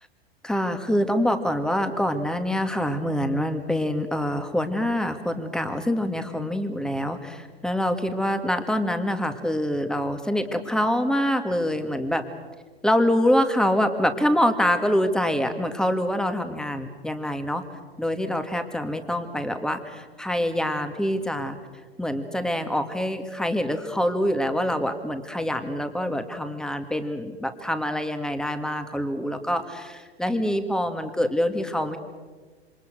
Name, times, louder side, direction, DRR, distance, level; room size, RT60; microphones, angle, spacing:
voice 1, 0.4-12.2 12.8-17.6 18.0-21.6 22.0-32.0, equal, ahead, 7 dB, 2.2 m, -25 dB
27.5 x 25.5 x 6.4 m, 1.4 s
hypercardioid pair, 100°, 31 cm